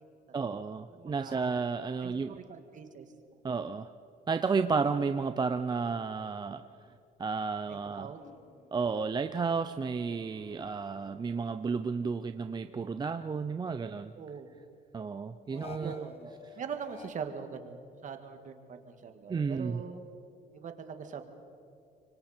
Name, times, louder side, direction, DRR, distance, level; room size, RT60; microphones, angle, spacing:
voice 1, 0.3-2.4 3.4-3.9 4.3-6.6 7.2-8.1 8.7-14.1 14.9-16.1 19.3-19.8, right 5 dB, 25° right, 9 dB, 0.6 m, -32 dB
voice 2, 0.9-1.4 2.0-3.1 7.7-8.2 14.1-14.6 15.5-20.0 20.5-21.4, right 6 dB, 50° right, 6 dB, 2.1 m, -43 dB
sound 1, 8.1-12.0 12.4-13.9 15.5-17.1, left 6 dB, 35° left, 1.7 m, -53 dB
26.0 x 24.0 x 4.5 m, 2.6 s
cardioid pair, 110°, 17 cm